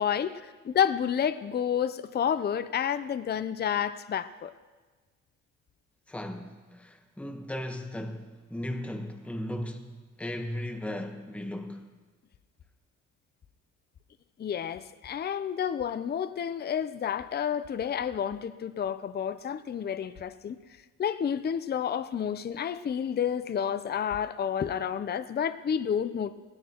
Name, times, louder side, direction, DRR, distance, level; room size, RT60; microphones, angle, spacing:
voice 1, 0.0-4.5 14.4-20.6 21.0-26.3, left 8 dB, 35° left, 0.6 m, -30 dB
voice 2, 6.1-11.9, left 1 dB, 5° left, 1.1 m, -37 dB
19.0 x 16.5 x 3.0 m
cardioid pair, 90°, 30 cm